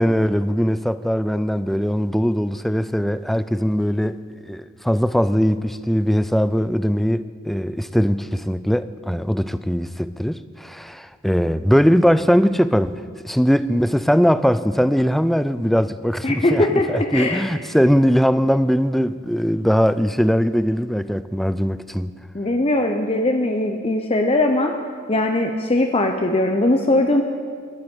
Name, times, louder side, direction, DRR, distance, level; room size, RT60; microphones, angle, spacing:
voice 1, 0.0-4.2 4.5-22.2, equal, ahead, 14 dB, 0.3 m, -20 dB
voice 2, 16.2-17.4 22.3-24.7 25.1-27.2, left 1 dB, 30° left, 4 dB, 0.7 m, -20 dB
11.5 x 9.6 x 9.0 m, 2.1 s
head